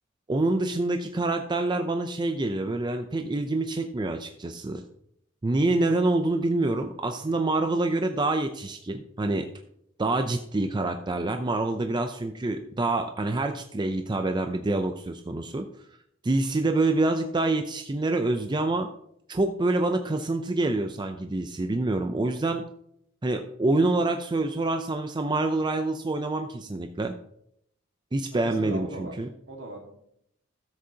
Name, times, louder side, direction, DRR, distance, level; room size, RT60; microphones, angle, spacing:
voice 1, 0.3-4.8 5.4-9.5 10.0-15.7 16.2-18.9 19.3-22.6 23.2-27.1 28.1-29.3, right 2 dB, 20° right, 6 dB, 0.5 m, -26 dB
voice 2, 28.3-29.1 29.5-29.9, right 2 dB, 65° right, 2 dB, 1.8 m, -39 dB
13.5 x 7.7 x 2.8 m, 0.73 s
head